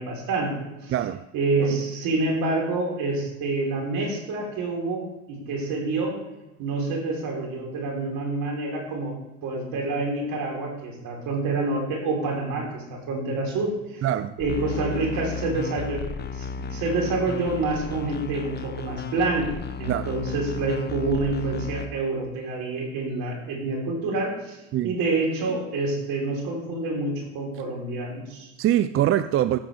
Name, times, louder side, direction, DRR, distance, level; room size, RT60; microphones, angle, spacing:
voice 1, 0.0-0.9 1.3-6.2 6.6-9.1 9.4-14.1 14.4-16.0 16.3-19.5 19.8-24.6 24.8-28.5, right 3 dB, 60° right, 3.9 m, -27 dB
voice 2, 0.9-1.2 14.0-14.4 19.9-20.2 24.7-25.0 28.6-29.6, right 12 dB, 35° right, 0.4 m, -23 dB
sound 1, 14.4-21.9, left 5 dB, 25° left, 0.9 m, -34 dB
14.5 x 7.8 x 3.4 m
supercardioid pair, 90°, 38 cm